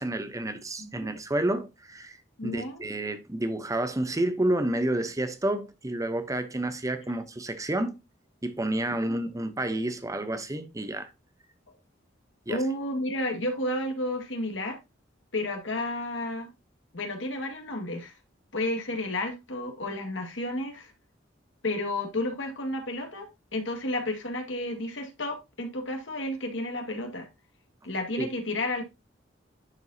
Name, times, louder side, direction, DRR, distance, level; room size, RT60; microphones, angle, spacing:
voice 1, 0.0-2.2 2.4-8.0 8.4-11.1 12.5-12.6 28.2-28.3, right 1 dB, 15° right, 0.8 m, -30 dB
voice 2, 0.8-1.1 2.4-2.8 9.1-9.2 11.7-11.8 12.5-14.8 15.3-16.5 16.9-18.1 18.5-20.9 21.6-23.3 23.5-27.3 27.8-28.8, left 1 dB, 80° left, 1.9 m, -31 dB
10.5 x 4.6 x 2.8 m
head